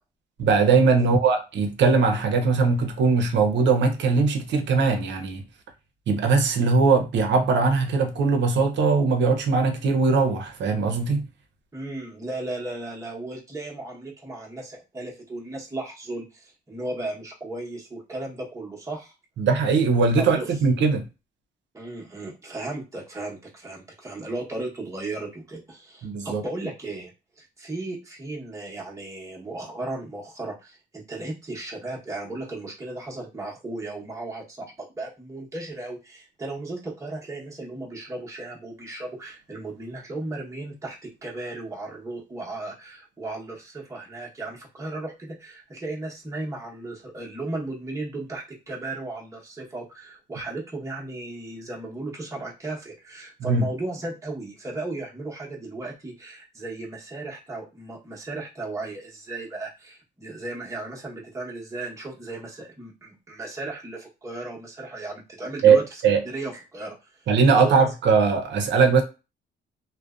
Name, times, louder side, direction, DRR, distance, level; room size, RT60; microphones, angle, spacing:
voice 1, 0.4-5.4 6.1-11.2 19.4-21.1 26.0-26.4 53.4-53.7 65.6-65.8 66.0-66.2 67.3-69.0, right 4 dB, 65° right, 0.6 m, -20 dB
voice 2, 11.7-19.2 20.2-20.5 21.7-27.1 27.4-67.8, right 2 dB, 15° right, 0.9 m, -35 dB
2.5 x 2.1 x 2.4 m
cardioid pair, 90°, 20 cm